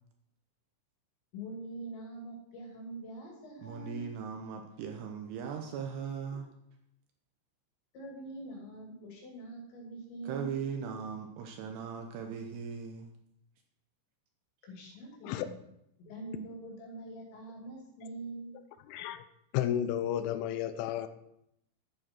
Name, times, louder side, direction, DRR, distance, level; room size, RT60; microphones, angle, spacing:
voice 1, 1.3-4.1 7.9-10.5 14.6-15.6 16.0-18.5, right 2 dB, 65° left, 4.6 m, -44 dB
voice 2, 3.6-6.5 10.2-13.1, right 6 dB, 80° right, 2.4 m, -38 dB
voice 3, 18.9-19.2 19.5-21.1, left 11 dB, 80° left, 3.0 m, -32 dB
11.0 x 9.1 x 4.4 m
omnidirectional pair, 5.9 m